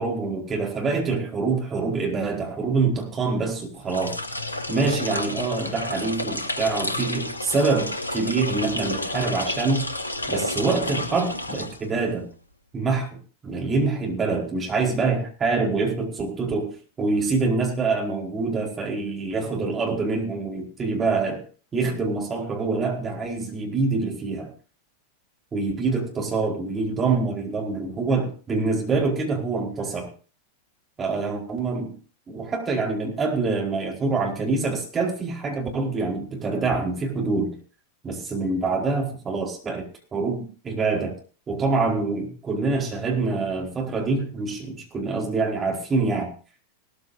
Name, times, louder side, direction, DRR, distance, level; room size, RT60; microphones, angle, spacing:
voice 1, 0.0-4.2 4.7-9.9 10.3-12.3 12.7-21.4 21.7-24.5 25.5-30.1 31.0-32.0 32.3-37.5 38.0-41.2 41.5-46.3, right 4 dB, 20° right, 0 dB, 4.5 m, -25 dB
sound 1, 3.8-12.2, left 1 dB, 80° left, 1.2 m, -30 dB
19.5 x 14.0 x 2.7 m, 0.39 s
figure-of-eight pair, 90°, 0 cm